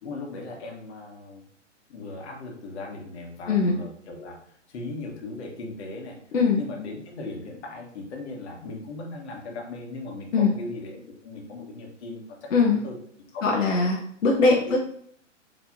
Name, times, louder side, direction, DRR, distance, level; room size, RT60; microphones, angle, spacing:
voice 1, 0.0-1.4 1.9-4.4 4.7-6.2 6.6-13.0 13.3-13.9 14.7-14.8, left 2 dB, 60° left, 0 dB, 1.3 m, -38 dB
voice 2, 13.4-14.8, left 4 dB, 80° left, -1 dB, 0.9 m, -21 dB
4.5 x 3.3 x 2.6 m, 0.66 s
hypercardioid pair, 135°, 38 cm